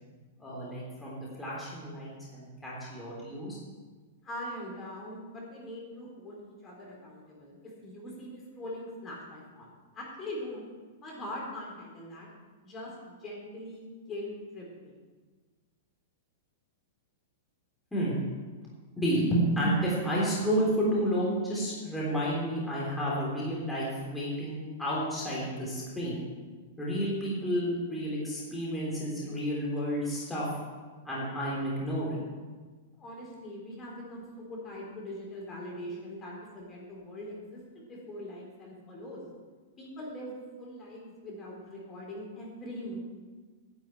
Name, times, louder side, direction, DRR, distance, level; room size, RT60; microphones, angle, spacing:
voice 1, 0.4-3.6 17.9-18.2 19.0-26.2 26.8-30.5 31.0-32.3, equal, 5° left, -7 dB, 3.5 m, -31 dB
voice 2, 4.2-10.6 11.0-12.3 12.6-15.0 33.0-39.2 39.8-40.3 40.6-43.0, left 1 dB, 20° left, -3 dB, 3.6 m, -42 dB
10.5 x 6.2 x 8.9 m, 1.4 s
hypercardioid pair, 140°, 0 cm